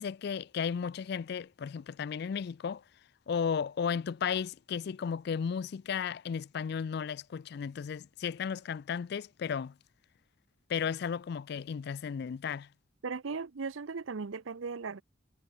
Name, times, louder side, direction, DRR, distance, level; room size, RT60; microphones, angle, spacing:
voice 1, 0.0-2.8 3.3-9.7 10.7-12.7, left 7 dB, 55° left, 0.3 m, -34 dB
voice 2, 13.0-15.0, right 4 dB, 80° right, 0.7 m, -37 dB
head